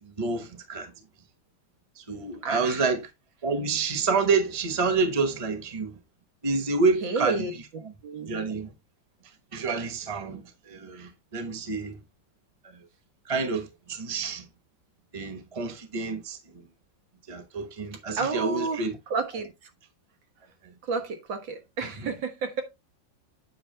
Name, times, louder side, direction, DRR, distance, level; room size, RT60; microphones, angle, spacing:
voice 1, 0.0-0.9 2.0-3.0 3.4-6.0 6.4-7.5 7.8-7.9 8.3-8.7 9.5-12.0 12.6-12.8 13.3-14.5 15.1-16.7 17.3-19.0 20.6-20.7 21.8-22.1, right 4 dB, 20° right, 1.0 m, -28 dB
voice 2, 2.4-2.9 7.0-7.6 8.0-8.4 18.2-18.8 19.1-19.5 20.9-22.6, right 4 dB, 85° right, 2.1 m, -30 dB
8.5 x 5.7 x 3.3 m
omnidirectional pair, 2.0 m